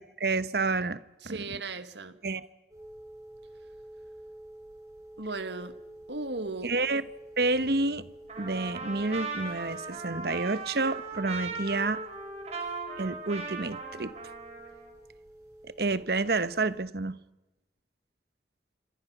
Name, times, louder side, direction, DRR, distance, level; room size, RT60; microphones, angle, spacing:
voice 1, 0.0-1.6 2.2-2.5 6.6-7.1 7.4-8.1 8.4-12.0 13.0-14.1 15.6-17.2, right 3 dB, 60° right, 1.0 m, -29 dB
voice 2, 1.2-2.2 5.2-5.8 6.1-6.7, right 3 dB, 75° right, 1.6 m, -36 dB
sound 1, 2.7-16.8, right 1 dB, 20° right, 6.5 m, -50 dB
Trumpet, 8.3-14.9, right 4 dB, 35° right, 5.5 m, -38 dB
27.5 x 25.5 x 6.0 m
head